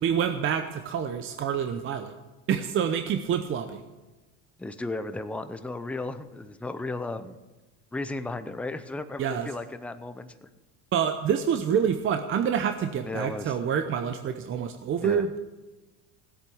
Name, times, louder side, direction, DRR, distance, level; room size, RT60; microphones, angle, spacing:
voice 1, 0.0-2.1 2.5-3.8 9.2-9.5 10.9-15.4, right 8 dB, 35° right, 7 dB, 0.8 m, -27 dB
voice 2, 4.6-7.4 7.9-10.5 13.0-13.6 15.0-15.3, left 2 dB, 5° left, 10 dB, 0.5 m, -35 dB
16.5 x 8.2 x 6.2 m, 1.1 s
supercardioid pair, 120°, 38 cm